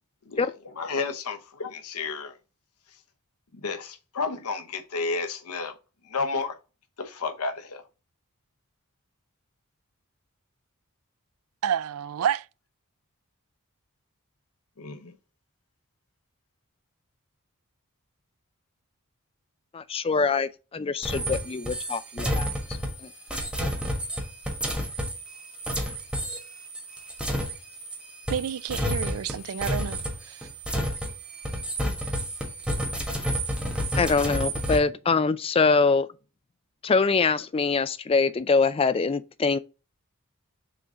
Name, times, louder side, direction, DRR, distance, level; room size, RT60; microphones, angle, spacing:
voice 1, 0.8-2.4 3.5-5.7 6.1-6.6 7.0-7.8 14.8-15.1, left 4 dB, 85° left, 0.9 m, -31 dB
voice 2, 11.6-12.4 28.3-30.0 30.3-30.4, right 8 dB, 70° right, 0.3 m, -29 dB
voice 3, 19.7-22.5 23.0-23.1 34.0-36.1 36.8-39.6, left 4 dB, 25° left, 0.4 m, -24 dB
sound 1, 21.0-28.0 28.3-34.8, equal, 5° right, 1.4 m, -30 dB
6.7 x 3.8 x 3.7 m
head